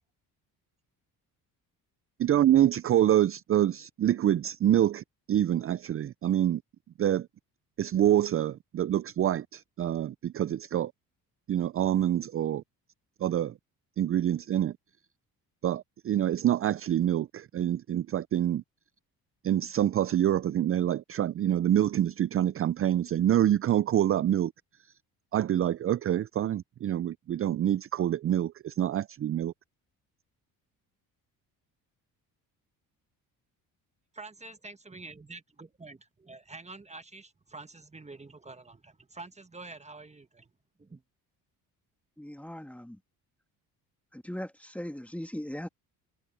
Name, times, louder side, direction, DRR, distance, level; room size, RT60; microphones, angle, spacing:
voice 1, 2.2-6.6 7.0-7.3 7.8-10.9 11.5-12.6 13.2-13.5 14.0-14.7 15.6-18.6 19.4-24.5 25.3-29.5, right 11 dB, 35° right, 0.5 m, -26 dB
voice 2, 34.1-40.4 40.9-41.0, right 3 dB, 20° right, 1.3 m, -47 dB
voice 3, 42.2-43.0 44.1-45.7, left 1 dB, 5° left, 1.9 m, -39 dB
cardioid pair, 80°, 38 cm